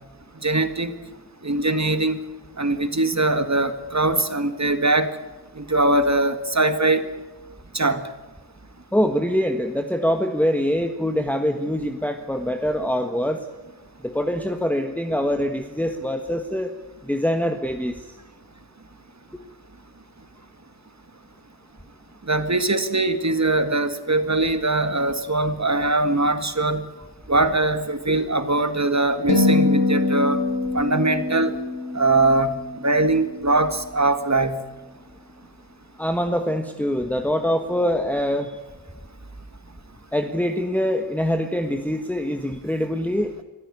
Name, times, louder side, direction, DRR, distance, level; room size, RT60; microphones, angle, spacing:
voice 1, 0.4-0.9 1.4-2.2 2.6-5.1 5.6-7.1 7.7-8.1 22.3-26.9 27.3-30.4 30.7-31.5 31.9-34.6, right 2 dB, 40° right, 10 dB, 1.9 m, -21 dB
voice 2, 8.9-13.5 14.0-16.7 17.0-18.2 36.0-38.6 40.1-43.4, equal, 5° left, 5 dB, 1.4 m, -24 dB
sound 1, 29.3-33.6, left 2 dB, 60° left, 3.4 m, -24 dB
24.5 x 14.0 x 9.8 m, 1.2 s
wide cardioid pair, 55°, 42 cm